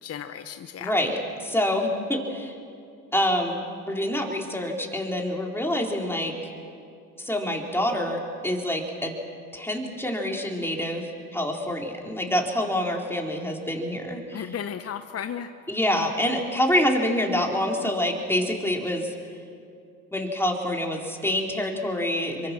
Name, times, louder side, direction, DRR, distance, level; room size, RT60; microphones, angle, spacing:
voice 1, 0.0-0.9 14.3-15.5, left 8 dB, 40° left, 8 dB, 1.1 m, -34 dB
voice 2, 0.8-2.5 3.1-6.3 7.2-9.1 9.5-14.6 15.7-19.1 20.1-22.5, left 1 dB, 5° left, 0 dB, 4.3 m, -26 dB
26.5 x 23.5 x 6.2 m, 2.4 s
hypercardioid pair, 65°, 38 cm